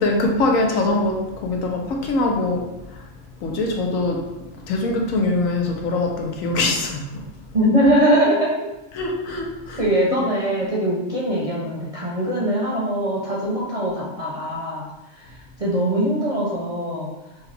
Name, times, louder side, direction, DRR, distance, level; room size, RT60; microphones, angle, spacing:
voice 1, 0.0-2.6 3.4-4.2 4.7-7.2 8.9-10.2, left 2 dB, 90° left, 1 dB, 1.2 m, -23 dB
voice 2, 7.5-8.7 9.8-14.8 15.6-17.1, right 1 dB, 35° right, -6 dB, 0.7 m, -21 dB
6.0 x 2.3 x 3.3 m, 0.97 s
omnidirectional pair, 1.4 m